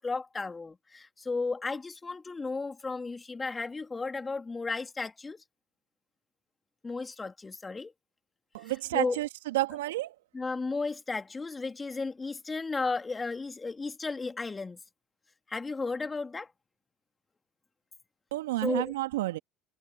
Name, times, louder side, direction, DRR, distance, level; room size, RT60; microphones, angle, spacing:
voice 1, 0.0-5.4 6.8-7.9 8.6-9.2 10.3-14.8 15.5-16.5 18.6-18.9, left 3 dB, 20° left, 2.9 m, -34 dB
voice 2, 8.5-10.1 18.3-19.4, right 17 dB, 80° right, 2.3 m, -30 dB
hypercardioid pair, 70°, 0 cm